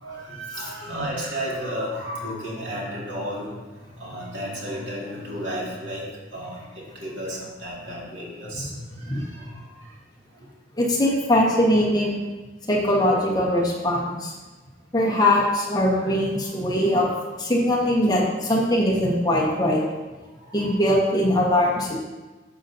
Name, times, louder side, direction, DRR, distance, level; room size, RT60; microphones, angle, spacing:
voice 1, 0.0-3.5 4.0-6.0 6.3-8.8 9.1-9.6 15.2-15.3 16.0-16.2 16.8-17.0 20.6-20.7 21.5-21.6, equal, 85° right, -5 dB, 2.5 m, -33 dB
voice 2, 10.8-12.2 12.7-14.3 14.9-19.8 20.5-22.0, left 1 dB, 20° left, -3 dB, 1.4 m, -21 dB
11.0 x 6.8 x 2.8 m, 1.2 s
head